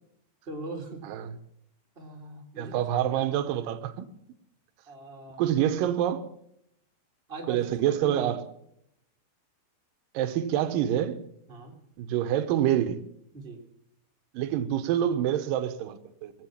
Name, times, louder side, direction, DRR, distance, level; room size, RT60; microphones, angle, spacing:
voice 1, 0.5-1.0 1.9-2.8 3.1-3.3 4.9-5.4 7.3-7.7 8.0-8.4 11.5-11.8 13.3-13.6, right 2 dB, 50° right, 0.6 m, -40 dB
voice 2, 1.0-1.4 2.6-4.1 5.4-6.3 7.5-8.5 10.1-11.3 12.0-13.0 14.3-16.3, right 11 dB, 75° right, 2.1 m, -27 dB
20.5 x 8.4 x 7.2 m
omnidirectional pair, 5.0 m